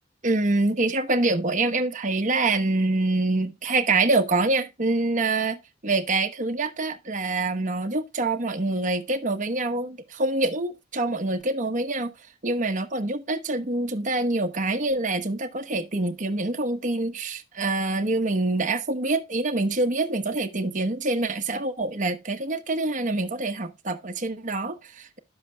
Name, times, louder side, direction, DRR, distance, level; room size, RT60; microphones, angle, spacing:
voice 1, 0.2-5.6 5.8-12.1 12.4-25.2, right 2 dB, 40° right, 1.1 m, -25 dB
11.5 x 7.5 x 2.3 m
head